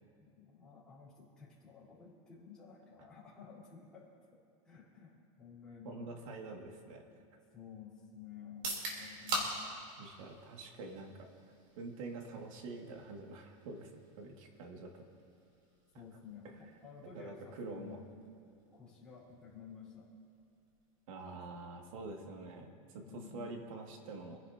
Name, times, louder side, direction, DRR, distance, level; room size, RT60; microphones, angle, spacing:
voice 1, 0.2-4.1 4.6-6.4 7.2-9.8 15.9-18.0 18.7-20.1 23.0-23.5, left 7 dB, 5° left, -9 dB, 4.3 m, -53 dB
voice 2, 5.8-7.0 10.0-11.3 11.8-13.9 14.2-14.9 16.5-16.6 17.0-18.0 21.1-24.4, right 3 dB, 75° right, 2 dB, 2.3 m, -46 dB
sound 1, 8.5-22.3, right 1 dB, 40° right, 3.7 m, -47 dB
27.5 x 11.0 x 2.9 m, 2.4 s
supercardioid pair, 170°, 17 cm